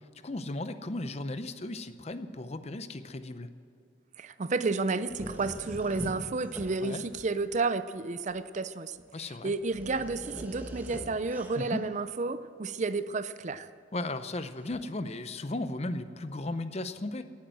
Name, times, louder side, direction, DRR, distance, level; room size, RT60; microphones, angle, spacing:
voice 1, 0.2-3.5 6.8-7.0 9.1-9.5 11.6-11.8 13.9-17.2, left 2 dB, 30° left, 11 dB, 0.6 m, -36 dB
voice 2, 4.2-9.0 9.4-13.7, right 3 dB, 35° right, 13 dB, 0.4 m, -31 dB
sound 1, 5.1-7.5 8.3-8.4 9.0-9.1 9.4-12.0 14.6-14.8, equal, 10° right, 1.3 m, -43 dB
17.0 x 8.6 x 7.7 m, 2.6 s
head